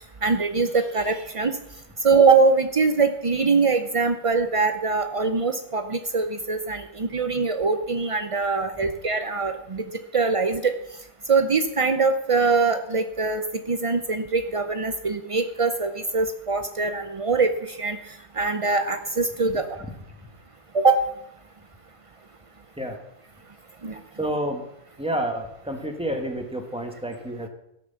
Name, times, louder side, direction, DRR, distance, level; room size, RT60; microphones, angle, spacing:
voice 1, 0.2-1.6 2.0-10.7 11.3-13.4 13.7-18.0 18.4-19.7 20.7-21.0 23.8-24.0, right 4 dB, 50° right, 8 dB, 0.3 m, -23 dB
voice 2, 24.2-24.6 25.0-27.5, right 1 dB, 5° right, 3 dB, 1.8 m, -29 dB
17.0 x 6.8 x 7.0 m, 0.80 s
omnidirectional pair, 1.6 m